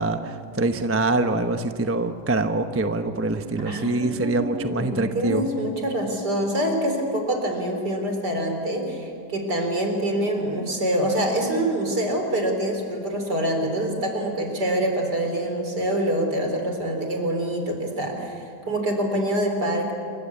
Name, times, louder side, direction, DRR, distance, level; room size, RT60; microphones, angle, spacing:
voice 1, 0.0-5.5, right 2 dB, 10° right, 7 dB, 0.7 m, -24 dB
voice 2, 3.6-19.9, right 1 dB, 65° right, 4 dB, 4.6 m, -25 dB
27.5 x 24.0 x 8.5 m, 2.4 s
omnidirectional pair, 1.9 m